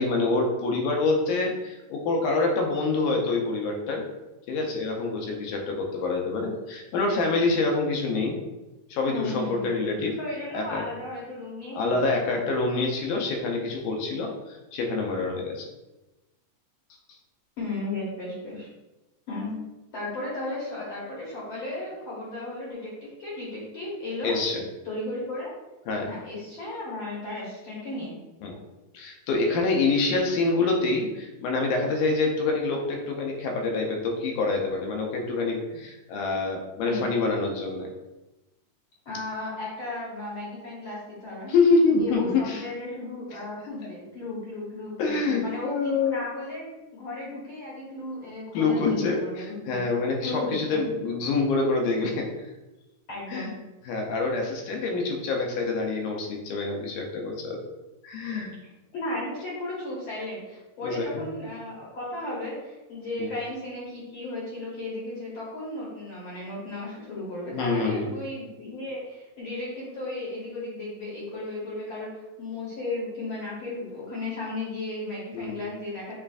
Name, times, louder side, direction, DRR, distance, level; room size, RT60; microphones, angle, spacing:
voice 1, 0.0-4.1 4.5-8.4 8.9-10.2 10.5-10.8 11.8-15.7 24.2-24.6 25.9-26.1 28.4-28.6 28.9-37.9 41.5-42.6 43.3-43.4 45.0-46.2 48.5-52.5 53.3-53.5 53.9-57.6 58.0-58.5 60.8-61.4 63.2-63.3 67.5-68.1 75.3-75.6, left 3 dB, 85° left, 1 dB, 2.1 m, -26 dB
voice 2, 9.1-9.8 10.2-12.5 17.6-18.7 19.3-19.5 19.9-24.3 24.8-25.5 26.0-28.1 36.8-37.1 39.0-41.5 41.9-46.6 46.9-49.9 50.2-50.8 53.1-53.5 58.9-76.2, left 2 dB, 65° left, -7 dB, 1.4 m, -35 dB
6.9 x 2.4 x 2.4 m, 1.0 s
omnidirectional pair, 3.6 m